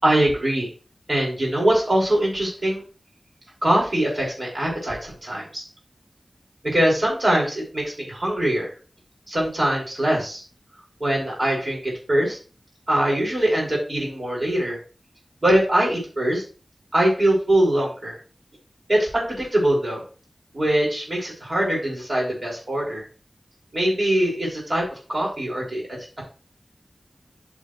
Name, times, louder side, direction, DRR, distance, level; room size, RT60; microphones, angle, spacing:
voice 1, 0.0-0.7 1.1-2.8 3.6-5.6 6.6-8.7 9.3-10.4 11.0-12.4 12.9-14.8 15.4-16.4 16.9-18.2 18.9-20.0 20.5-23.0 23.7-25.8, right 1 dB, 50° right, -4 dB, 5.7 m, -22 dB
11.5 x 6.5 x 3.3 m, 0.38 s
wide cardioid pair, 65°, 0 cm